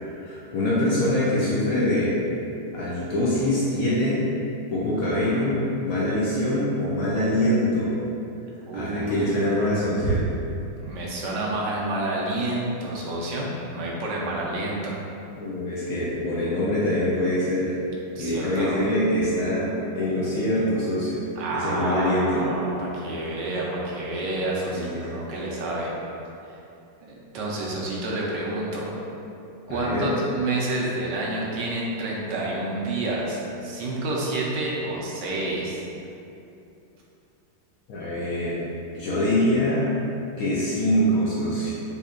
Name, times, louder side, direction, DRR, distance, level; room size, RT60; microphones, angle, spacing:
voice 1, 0.0-2.1 2.7-4.3 4.7-7.9 8.7-10.2 15.4-17.7 18.2-19.7 20.0-21.2 21.5-22.4 24.7-25.2 29.7-30.1 37.9-38.6 38.9-39.9 40.4-41.7, left 1 dB, 65° left, -7 dB, 0.9 m, -24 dB
voice 2, 5.0-5.5 8.7-9.4 10.8-15.0 18.1-18.8 21.4-25.9 26.5-26.6 27.0-28.9 29.7-35.8, right 2 dB, 75° right, -4 dB, 1.2 m, -29 dB
4.2 x 2.7 x 2.4 m, 2.7 s
omnidirectional pair, 1.9 m